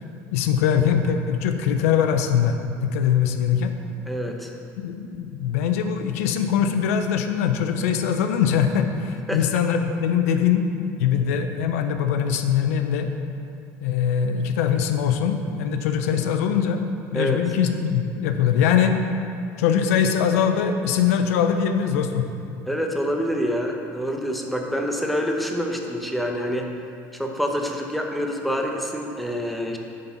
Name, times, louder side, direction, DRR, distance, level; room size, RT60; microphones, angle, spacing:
voice 1, 0.3-3.7 4.8-10.7 11.0-13.1 13.8-16.8 17.1-18.9 19.6-22.3, left 8 dB, 90° left, 7 dB, 0.5 m, -22 dB
voice 2, 4.1-4.5 9.3-9.6 17.1-17.4 22.7-26.7 27.1-29.8, equal, ahead, 1 dB, 0.9 m, -26 dB
8.4 x 4.1 x 5.7 m, 2.5 s
supercardioid pair, 95°, 8 cm